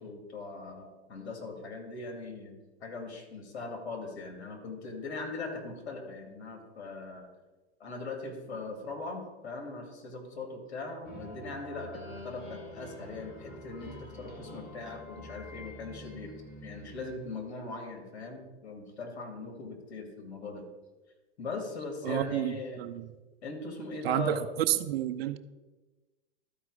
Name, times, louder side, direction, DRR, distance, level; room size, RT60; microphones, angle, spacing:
voice 1, 0.0-2.5 2.8-7.3 7.8-16.3 16.6-20.7 21.4-22.8 23.4-24.5, left 3 dB, 75° left, 4 dB, 2.4 m, -40 dB
sound 1, 11.0-17.6, left 1 dB, 30° left, 2.0 m, -47 dB
voice 2, 22.0-23.1 24.0-25.4, right 13 dB, 60° right, 12 dB, 0.7 m, -30 dB
12.5 x 4.8 x 4.8 m, 1.2 s
hypercardioid pair, 125°, 34 cm